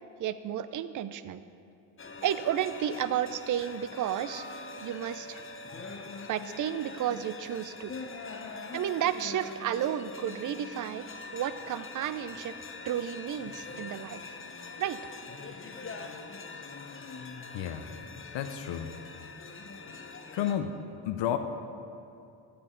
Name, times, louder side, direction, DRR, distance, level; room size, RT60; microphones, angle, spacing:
voice 1, 0.2-1.4 2.2-4.5 4.8-5.4 6.3-7.9 8.7-11.1 11.3-12.5 12.8-14.3 14.8-15.0, right 10 dB, 40° right, 13 dB, 0.5 m, -32 dB
sound 1, 2.0-20.5, left 4 dB, 25° left, 0.8 m, -43 dB
voice 2, 17.5-17.9 18.3-18.9 20.3-20.8 21.0-21.4, left 10 dB, 65° left, 7 dB, 0.8 m, -31 dB
12.0 x 8.6 x 3.8 m, 2.6 s
supercardioid pair, 65°, 49 cm